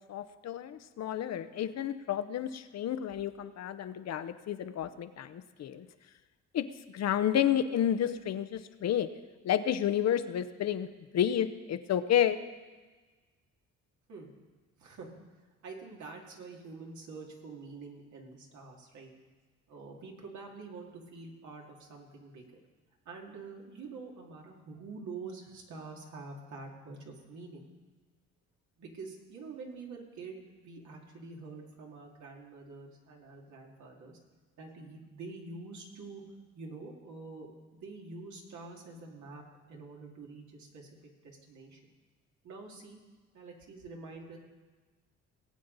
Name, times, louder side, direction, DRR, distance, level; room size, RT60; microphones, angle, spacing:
voice 1, 0.0-5.9 6.5-6.6 6.9-9.1 9.4-10.9 11.1-12.4, left 10 dB, 60° left, 11 dB, 0.7 m, -30 dB
voice 2, 14.8-15.1 15.6-19.1 19.7-22.4 23.0-27.7 28.8-34.2 34.6-36.2 36.5-39.4 39.7-41.9 42.4-43.0 43.3-44.4, right 3 dB, 70° right, 0 dB, 2.5 m, -46 dB
19.0 x 8.5 x 4.0 m, 1.3 s
cardioid pair, 90°, 30 cm